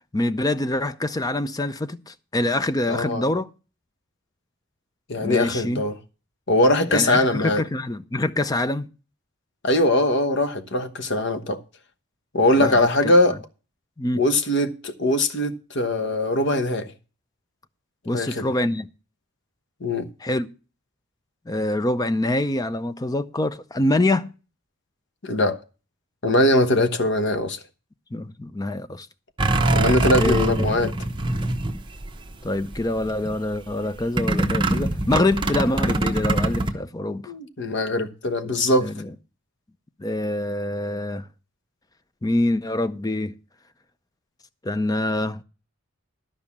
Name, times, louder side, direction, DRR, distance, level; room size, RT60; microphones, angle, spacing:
voice 1, 0.1-3.5 5.2-5.8 6.9-8.9 12.6-13.1 14.0-14.2 18.1-18.9 20.2-20.5 21.5-24.3 28.1-29.1 30.1-30.9 32.4-37.3 38.4-39.1 40.0-41.3 42.2-43.3 44.6-45.4, left 1 dB, 15° left, 0.5 m, -25 dB
voice 2, 2.9-3.2 5.1-5.9 6.5-7.6 9.6-11.6 12.3-13.4 14.1-16.9 18.1-18.5 19.8-20.1 25.2-25.6 26.2-27.6 29.7-30.9 37.3-38.9, left 1 dB, 55° left, 1.1 m, -21 dB
sound 1, 29.4-32.4 32.7-33.3 34.2-36.7, right 2 dB, 20° right, 0.9 m, -23 dB
12.5 x 5.4 x 7.1 m
head